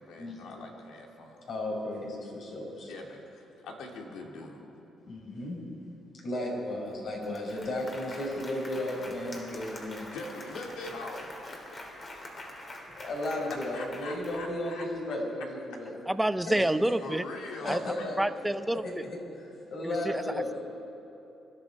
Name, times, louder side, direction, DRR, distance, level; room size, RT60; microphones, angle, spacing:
voice 1, 0.0-1.5 2.9-4.7 10.1-11.6 13.7-14.9 17.0-18.1, left 2 dB, 85° left, 0 dB, 2.4 m, -42 dB
voice 2, 1.5-2.9 5.1-5.6 6.2-10.1 13.0-15.9 16.4-16.7 17.6-20.6, left 1 dB, 60° left, -1 dB, 4.9 m, -35 dB
Applause, 6.9-7.0 7.2-14.8, left 1 dB, 35° left, 3.1 m, -45 dB
voice 3, 16.1-17.2 17.6-19.0 19.8-20.2, right 1 dB, 10° right, 12 dB, 0.6 m, -29 dB
24.5 x 12.0 x 4.7 m, 2.9 s
cardioid pair, 90°, 0 cm